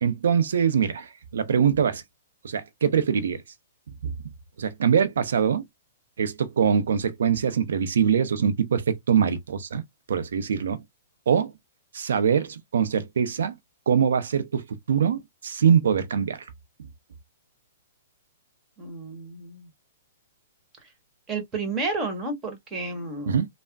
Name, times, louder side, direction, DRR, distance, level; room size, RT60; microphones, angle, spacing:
voice 1, 0.0-2.0 2.4-3.4 4.0-4.1 4.6-5.6 6.2-9.8 10.1-10.8 11.3-11.5 11.9-13.5 13.9-16.4 23.3-23.5, right 7 dB, 75° right, 0.6 m, -23 dB
voice 2, 18.8-19.7 21.3-23.4, right 3 dB, 20° right, 1.4 m, -31 dB
3.3 x 2.1 x 2.4 m
hypercardioid pair, 125°, 0 cm